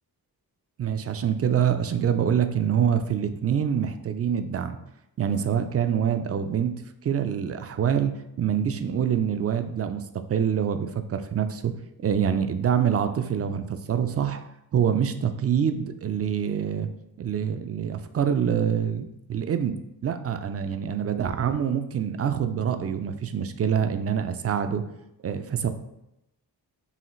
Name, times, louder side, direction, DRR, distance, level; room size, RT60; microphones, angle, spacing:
voice 1, 0.8-4.8 5.2-6.7 7.0-8.1 8.4-10.0 10.3-14.4 14.7-16.9 17.2-19.8 20.0-24.8 25.2-25.7, right 8 dB, 40° right, 9 dB, 0.4 m, -25 dB
5.6 x 2.4 x 3.0 m, 0.86 s
cardioid pair, 70°, 39 cm